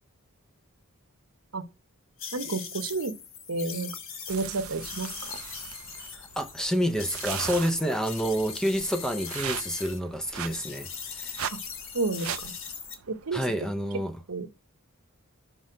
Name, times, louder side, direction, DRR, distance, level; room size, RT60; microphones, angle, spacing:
sound 1, 2.2-10.0 10.3-12.9, left 6 dB, 65° left, 1.2 m, -40 dB
voice 1, 2.3-3.1 3.5-3.9 4.3-5.4 11.5-11.6 11.9-12.5 13.1-13.4 14.3-14.5, right 3 dB, 85° right, 1.0 m, -31 dB
sound 2, 4.3-13.5, right 10 dB, 70° right, 0.4 m, -40 dB
voice 2, 6.1-10.9 11.1-11.4 13.3-14.2, equal, 5° left, 0.6 m, -28 dB
6.1 x 5.3 x 4.9 m
head